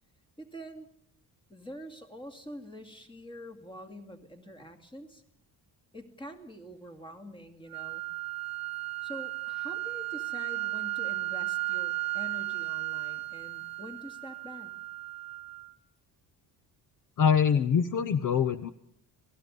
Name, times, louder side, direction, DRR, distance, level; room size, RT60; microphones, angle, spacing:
voice 1, 0.4-0.9 1.5-5.2 5.9-8.0 9.0-14.8, equal, 10° left, 5 dB, 2.3 m, -46 dB
sound 1, 7.7-15.7, right 19 dB, 40° right, 1.1 m, -35 dB
voice 2, 17.2-18.7, left 7 dB, 50° left, 12 dB, 0.9 m, -24 dB
28.0 x 19.0 x 5.3 m, 0.67 s
cardioid pair, 170°, 41 cm